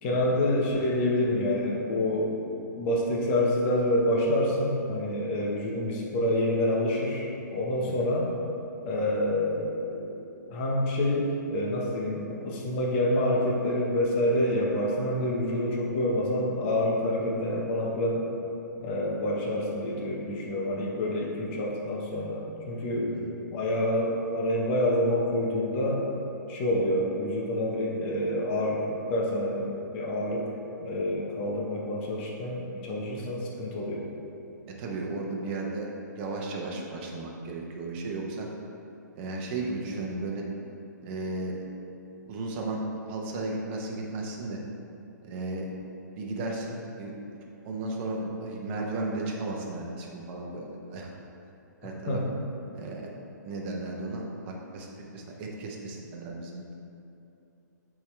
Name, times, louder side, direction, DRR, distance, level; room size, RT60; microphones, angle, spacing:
voice 1, 0.0-8.3 8.8-10.2 10.5-18.2 18.8-23.1 23.5-26.0 26.5-30.5 30.8-34.0 52.1-52.3, left 1 dB, 40° left, -2 dB, 1.1 m, -27 dB
voice 2, 34.8-38.5 39.2-40.4 41.0-41.7 42.3-44.6 45.2-45.7 46.2-47.1 47.6-51.1 51.8-52.2 52.7-53.1 53.4-54.9 55.1-56.7, right 2 dB, 40° right, -1 dB, 0.9 m, -34 dB
8.2 x 3.7 x 3.3 m, 2.8 s
hypercardioid pair, 130°, 10 cm